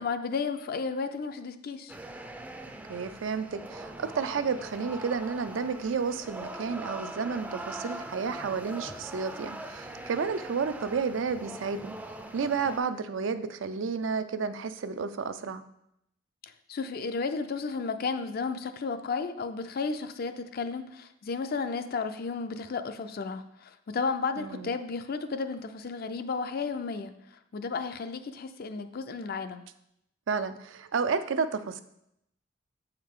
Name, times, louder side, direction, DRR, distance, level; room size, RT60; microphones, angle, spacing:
voice 1, 0.0-2.0 16.4-27.1 27.5-29.6, left 4 dB, 50° left, 9 dB, 0.5 m, -33 dB
sound 1, 1.9-12.8, right 1 dB, 10° right, 0.4 m, -42 dB
voice 2, 2.9-11.9 12.3-15.6 24.4-24.7 30.3-31.8, right 5 dB, 75° right, 11 dB, 0.4 m, -31 dB
7.8 x 4.7 x 3.7 m, 0.79 s
head